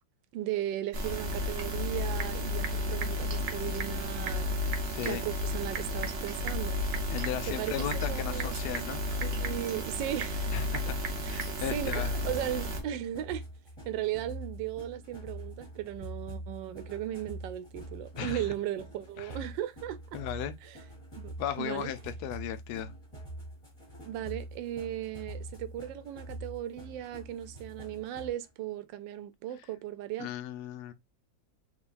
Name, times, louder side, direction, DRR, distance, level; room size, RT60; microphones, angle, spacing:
voice 1, 0.3-4.5 5.0-7.0 7.5-8.6 9.2-10.5 11.2-11.4 11.7-13.4 13.8-20.2 20.6-20.8 21.2-21.9 24.0-30.3, right 12 dB, 85° right, 1.3 m, -37 dB
sound 1, 0.9-12.8, left 1 dB, 45° right, 0.9 m, -33 dB
Typing / Telephone, 1.6-12.1, right 7 dB, 70° right, 1.3 m, -43 dB
voice 2, 4.9-5.2 7.1-9.2 10.5-10.9 11.3-12.1 18.2-18.4 19.2-19.4 20.1-20.5 21.4-22.9 30.2-30.9, left 10 dB, 70° left, 1.1 m, -36 dB
sound 2, 12.3-28.5, right 1 dB, 15° left, 1.7 m, -44 dB
3.7 x 3.1 x 2.5 m
omnidirectional pair, 1.9 m